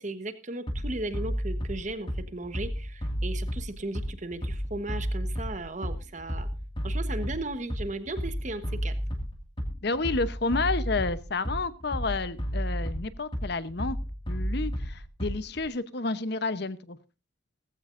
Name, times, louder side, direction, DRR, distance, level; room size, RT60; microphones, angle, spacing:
voice 1, 0.0-6.5 6.8-8.9, right 2 dB, 40° right, 11 dB, 1.2 m, -36 dB
Bass drum, 0.7-15.7, equal, 25° left, 2.1 m, -32 dB
voice 2, 9.8-14.0 14.3-17.0, left 3 dB, 55° left, 14 dB, 0.9 m, -30 dB
17.5 x 15.0 x 2.6 m, 0.29 s
head